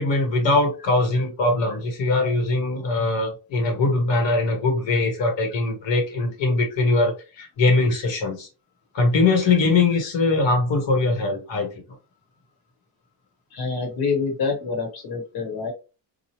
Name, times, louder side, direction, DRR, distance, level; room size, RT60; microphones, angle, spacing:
voice 1, 0.0-8.5 8.9-11.7, left 3 dB, 75° left, 1.1 m, -21 dB
voice 2, 13.5-15.7, left 4 dB, 55° left, 1.1 m, -27 dB
3.0 x 2.3 x 2.8 m
cardioid pair, 175°, 45 cm